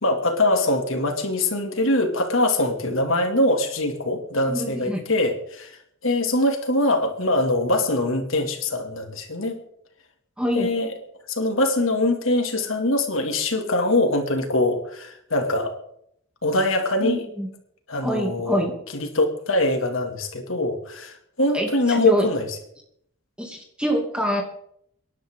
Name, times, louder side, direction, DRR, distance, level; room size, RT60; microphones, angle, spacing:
voice 1, 0.0-5.8 6.0-9.6 10.5-10.9 11.3-15.7 16.4-17.2 17.9-18.7 18.9-22.5, left 1 dB, 75° left, 4 dB, 2.5 m, -23 dB
voice 2, 4.5-5.0 10.4-10.7 17.0-17.5 18.0-18.7 21.5-22.3 23.4-24.4, equal, 5° right, 0 dB, 2.5 m, -25 dB
25.0 x 11.0 x 3.8 m, 0.70 s
head